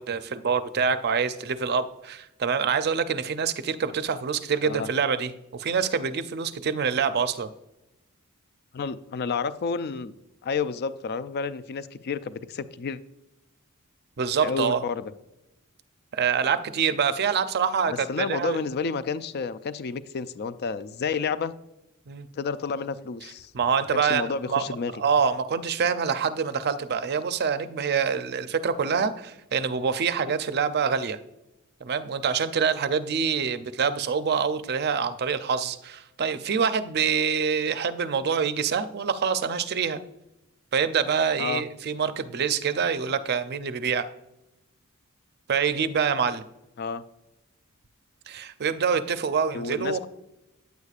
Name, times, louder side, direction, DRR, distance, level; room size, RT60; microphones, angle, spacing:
voice 1, 0.0-7.5 14.2-14.8 16.1-18.6 22.1-22.3 23.5-31.2 31.8-40.0 40.7-44.1 45.5-46.4 48.3-50.1, right 6 dB, 50° right, 12 dB, 0.5 m, -26 dB
voice 2, 8.7-10.1 10.4-13.0 14.4-15.1 17.9-21.5 22.4-23.5 23.9-24.9 41.4-41.6 46.8-47.0 49.5-50.1, left 5 dB, 50° left, 14 dB, 0.4 m, -30 dB
9.3 x 8.1 x 2.4 m, 0.91 s
head